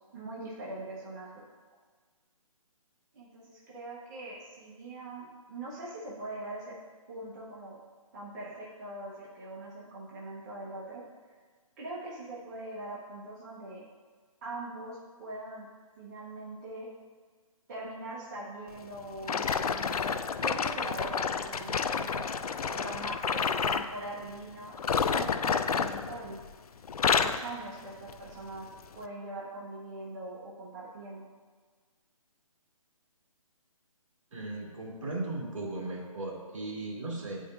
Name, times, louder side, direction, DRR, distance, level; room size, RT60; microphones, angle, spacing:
voice 1, 0.1-1.3 3.1-6.8 7.1-7.8 8.1-11.0 11.8-13.8 14.4-15.7 16.0-16.9 17.7-22.3 22.7-26.4 27.0-28.7 28.9-31.3, right 2 dB, 30° right, -6 dB, 1.1 m, -42 dB
sound 1, 19.2-23.9 24.7-26.5 26.8-27.5 28.1-28.3 28.9-29.0, left 6 dB, 90° left, 0.4 m, -29 dB
voice 2, 34.3-37.4, right 2 dB, 60° right, -3 dB, 2.0 m, -37 dB
9.9 x 5.1 x 2.6 m, 1.5 s
hypercardioid pair, 160°, 18 cm